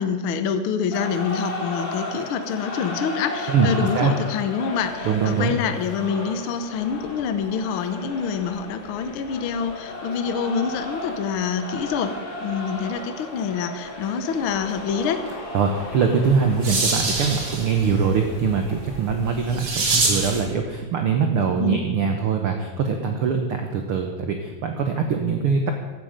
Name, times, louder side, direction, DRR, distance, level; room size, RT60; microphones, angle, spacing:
voice 1, 0.0-15.3 21.6-21.9, left 6 dB, 80° left, 9 dB, 1.2 m, -26 dB
sound 1, 0.9-19.4, left 1 dB, 45° left, 3.1 m, -35 dB
voice 2, 5.0-5.5 15.5-25.7, right 6 dB, 65° right, 5 dB, 1.4 m, -22 dB
sound 2, 16.1-20.5, right 3 dB, 45° right, 3.1 m, -26 dB
15.5 x 12.0 x 5.2 m, 1.3 s
omnidirectional pair, 3.8 m